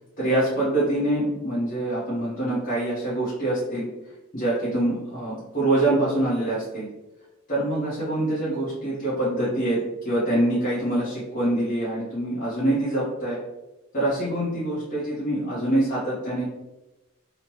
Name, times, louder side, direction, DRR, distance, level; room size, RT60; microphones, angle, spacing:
voice 1, 0.2-3.9 4.3-6.9 7.5-13.4 13.9-16.4, right 1 dB, 40° left, -10 dB, 1.0 m, -25 dB
3.1 x 2.1 x 3.0 m, 1.0 s
head